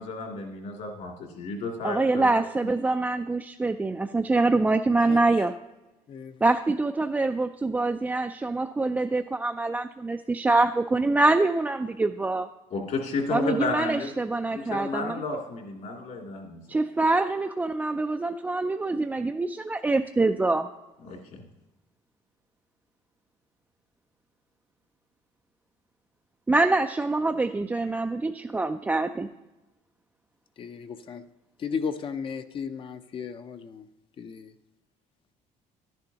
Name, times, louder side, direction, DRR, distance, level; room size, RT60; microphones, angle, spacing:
voice 1, 0.0-2.7 12.7-14.1 14.5-16.6 21.0-21.4, left 3 dB, 65° left, 1 dB, 2.6 m, -32 dB
voice 2, 1.8-5.5 6.4-12.5 13.3-15.2 16.7-20.7 26.5-29.3, right 2 dB, 10° right, 5 dB, 0.3 m, -25 dB
voice 3, 5.0-5.4 6.1-6.4 30.6-31.2 31.6-33.9 34.2-34.5, left 6 dB, 40° left, 10 dB, 0.6 m, -35 dB
12.0 x 10.5 x 2.9 m, 1.0 s
cardioid pair, 135°, 14 cm